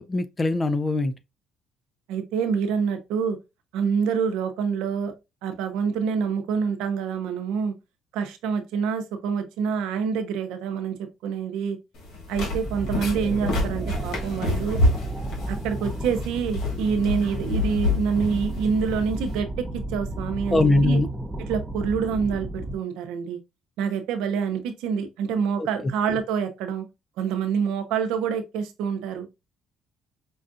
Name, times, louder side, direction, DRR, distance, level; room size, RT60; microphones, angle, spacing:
voice 1, 0.1-1.1 20.5-21.1 25.6-25.7, left 2 dB, 25° left, 0.5 m, -21 dB
voice 2, 2.1-3.4 3.7-5.1 5.4-7.7 8.1-11.0 11.2-11.8 12.3-14.8 15.5-21.0 21.5-23.4 23.8-26.9 27.2-29.3, right 6 dB, 85° right, 0.7 m, -26 dB
sound 1, 11.9-19.4, left 1 dB, 75° left, 1.3 m, -28 dB
sound 2, 12.6-22.7, right 1 dB, 10° right, 0.8 m, -33 dB
5.3 x 2.4 x 2.6 m
supercardioid pair, 80°, 0 cm